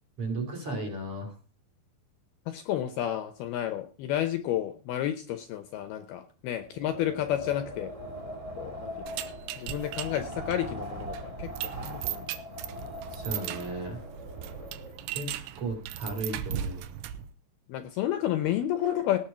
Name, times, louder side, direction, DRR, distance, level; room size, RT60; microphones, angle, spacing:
voice 1, 0.2-1.3 13.1-14.0 15.1-16.9, right 2 dB, 35° right, 2 dB, 3.3 m, -35 dB
voice 2, 2.5-7.9 8.6-8.9 9.6-11.5 11.8-12.2 17.7-19.2, left 12 dB, 75° left, 9 dB, 2.5 m, -31 dB
Wind, 6.7-15.1, equal, 15° right, 1.2 m, -41 dB
sound 1, 9.1-17.3, right 11 dB, 85° right, 3.1 m, -38 dB
18.5 x 6.6 x 5.6 m, 0.40 s
omnidirectional pair, 5.2 m